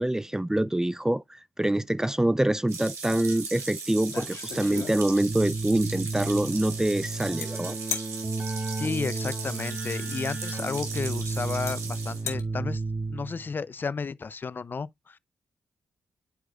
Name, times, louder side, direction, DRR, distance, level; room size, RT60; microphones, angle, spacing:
voice 1, 0.0-7.8, right 1 dB, 10° right, 0.4 m, -25 dB
sound 1, 2.7-12.2, right 4 dB, 75° right, 3.9 m, -38 dB
sound 2, 3.5-3.6 4.0-5.4 7.4-7.5 7.9-8.1 10.0-10.1 11.0-11.1 11.7-11.8 12.1-12.4, left 7 dB, 80° left, 2.1 m, -35 dB
Keyboard (musical), 5.2-13.5, right 3 dB, 30° right, 2.3 m, -33 dB
voice 2, 8.8-12.8 13.1-15.2, left 5 dB, 45° left, 0.5 m, -33 dB
11.5 x 4.8 x 2.4 m
cardioid pair, 60°, 5 cm